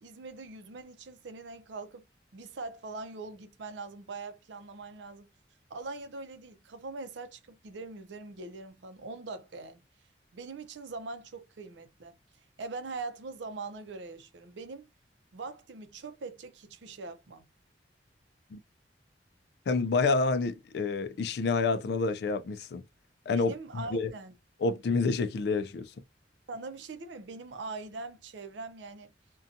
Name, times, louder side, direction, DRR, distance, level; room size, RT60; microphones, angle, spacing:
voice 1, 0.0-2.0 2.3-5.3 5.7-9.8 10.3-12.2 12.6-14.9 15.3-17.4 23.3-24.3 26.5-29.1, right 3 dB, 80° right, 0.5 m, -42 dB
voice 2, 19.7-22.8 23.3-24.1 24.6-25.9, left 4 dB, 60° left, 0.3 m, -28 dB
2.6 x 2.2 x 2.5 m
head